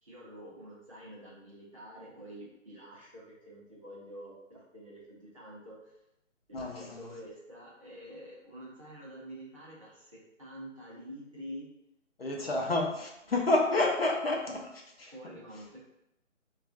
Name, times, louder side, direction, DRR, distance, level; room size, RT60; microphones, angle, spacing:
voice 1, 0.0-5.9 6.5-11.7 12.3-12.6 13.7-13.8 15.1-15.8, equal, 25° right, -9 dB, 0.6 m, -47 dB
voice 2, 6.5-7.1 12.2-15.1, left 2 dB, 50° left, 0 dB, 0.5 m, -30 dB
3.5 x 2.4 x 2.4 m, 0.85 s
figure-of-eight pair, 165°, 38 cm